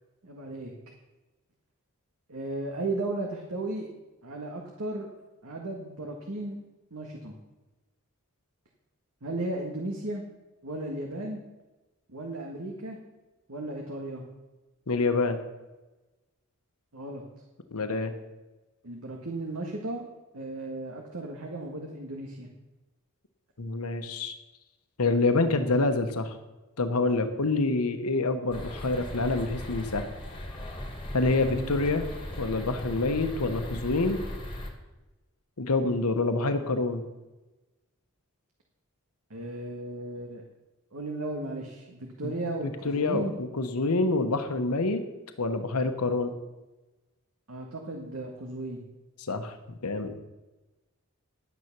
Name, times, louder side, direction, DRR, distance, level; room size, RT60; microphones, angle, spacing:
voice 1, 0.2-0.7 2.3-3.9 4.2-5.1 5.4-6.6 6.9-7.3 9.2-10.2 10.6-11.4 12.1-13.0 13.5-14.2 16.9-17.2 18.8-20.0 20.3-22.5 25.4-25.5 31.4-31.7 39.3-40.4 40.9-43.3 47.5-48.8, right 2 dB, 75° right, 0 dB, 1.7 m, -35 dB
voice 2, 14.9-15.4 17.7-18.1 23.6-24.3 25.0-26.4 26.8-30.1 31.1-32.1 32.4-34.2 35.6-37.0 42.2-42.3 42.8-45.0 45.4-46.3 49.2-50.1, left 3 dB, 90° left, 8 dB, 1.0 m, -27 dB
sound 1, 28.5-34.7, left 1 dB, 25° left, 1.9 m, -38 dB
11.0 x 9.6 x 6.0 m, 1.1 s
head